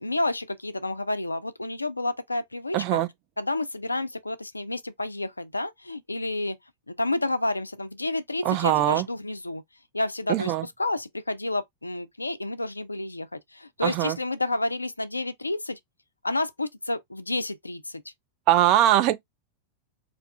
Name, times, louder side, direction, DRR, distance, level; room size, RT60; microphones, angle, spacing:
voice 1, 0.0-3.0 3.4-6.6 6.9-9.6 9.9-10.5 10.8-15.8 16.2-18.0, left 2 dB, 80° left, 0.3 m, -30 dB
voice 2, 2.7-3.1 8.4-9.1 10.3-10.7 13.8-14.2 18.5-19.1, right 13 dB, 40° right, 0.3 m, -21 dB
2.4 x 2.3 x 3.2 m
figure-of-eight pair, 90°, 0 cm